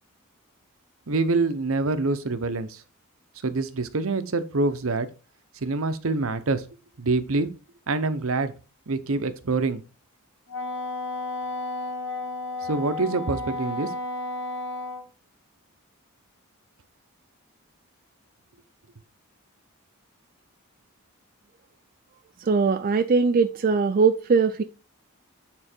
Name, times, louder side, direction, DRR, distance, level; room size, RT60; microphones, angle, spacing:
voice 1, 1.1-2.8 3.4-5.1 5.6-6.7 7.0-7.5 7.9-8.5 8.9-9.8 12.6-13.9, right 3 dB, 65° right, 0.8 m, -25 dB
Wind instrument woodwind instrument, 10.5-15.0, left 2 dB, 60° left, 2.4 m, -32 dB
voice 2, 22.4-24.6, right 5 dB, 40° right, 0.4 m, -21 dB
8.9 x 3.9 x 4.4 m
head